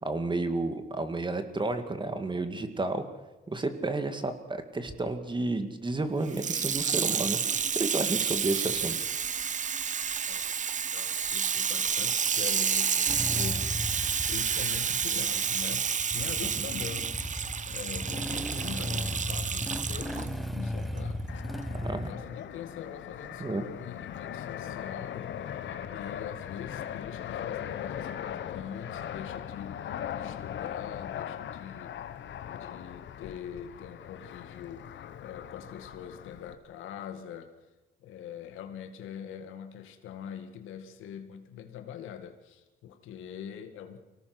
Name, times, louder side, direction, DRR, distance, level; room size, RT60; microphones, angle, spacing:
voice 1, 0.0-3.0 3.5-7.4 7.7-9.0 16.4-16.5 21.7-22.1 23.4-23.6, right 2 dB, 25° right, 8 dB, 2.3 m, -31 dB
Water tap faucet / Sink (filling or washing), 6.3-20.3 21.0-21.1, right 7 dB, 40° right, 0.8 m, -30 dB
voice 2, 10.9-13.9 14.3-21.2 22.0-25.6 25.9-31.9 32.5-34.9 35.2-37.5 38.0-44.0, left 8 dB, 90° left, 7 dB, 2.1 m, -43 dB
Motorcycle / Engine starting, 13.1-22.1, equal, ahead, 1.3 m, -36 dB
Fixed-wing aircraft airplane, 21.3-36.5, left 9 dB, 70° left, 1.3 m, -39 dB
25.0 x 18.0 x 6.2 m, 1.1 s
cardioid pair, 90°, 20 cm